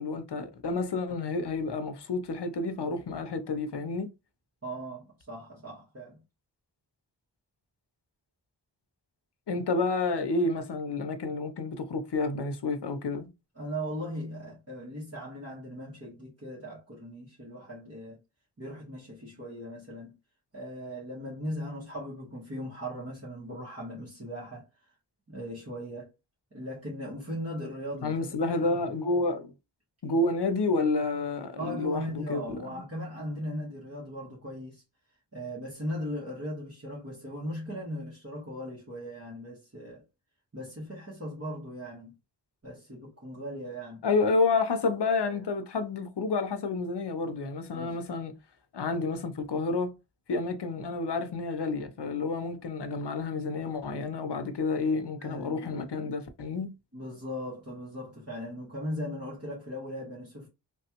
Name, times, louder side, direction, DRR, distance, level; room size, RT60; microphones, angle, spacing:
voice 1, 0.0-4.1 9.5-13.3 28.0-29.5 30.0-32.8 44.0-48.4 48.7-49.9 50.3-56.7, left 3 dB, 65° left, 0.7 m, -30 dB
voice 2, 4.6-6.2 13.6-18.2 18.6-20.1 20.5-24.6 25.3-26.1 26.5-28.2 28.6-28.8 30.0-30.2 31.6-34.8 35.3-40.0 40.5-42.1 42.6-44.0 47.7-48.0 55.2-55.7 56.9-60.5, equal, 35° right, 1.2 m, -38 dB
3.2 x 2.3 x 2.9 m
wide cardioid pair, 65°, 43 cm